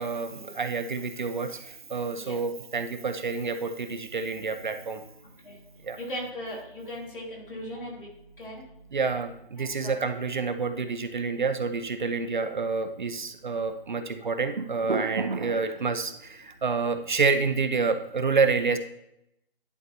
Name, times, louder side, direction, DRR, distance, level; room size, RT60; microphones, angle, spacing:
voice 1, 0.0-5.0 5.8-6.0 8.9-18.8, right 4 dB, 50° right, 9 dB, 0.6 m, -28 dB
voice 2, 6.0-6.6 6.9-8.1 8.4-8.6 9.8-9.9, equal, 60° left, -3 dB, 2.8 m, -37 dB
11.0 x 4.3 x 2.7 m, 0.79 s
hypercardioid pair, 170°, 30 cm